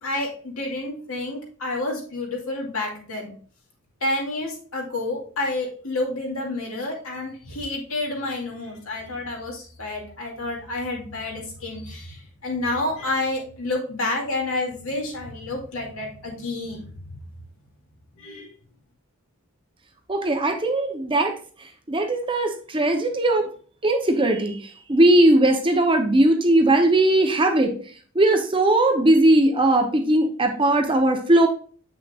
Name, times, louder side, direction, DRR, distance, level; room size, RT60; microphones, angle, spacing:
voice 1, 0.0-3.3 4.0-16.8 18.2-18.5, left 2 dB, 65° left, -1 dB, 2.4 m, -29 dB
voice 2, 20.1-21.4 21.9-23.5 23.8-27.7 28.1-31.5, right 1 dB, 25° right, 4 dB, 0.8 m, -19 dB
8.1 x 6.0 x 2.4 m, 0.42 s
head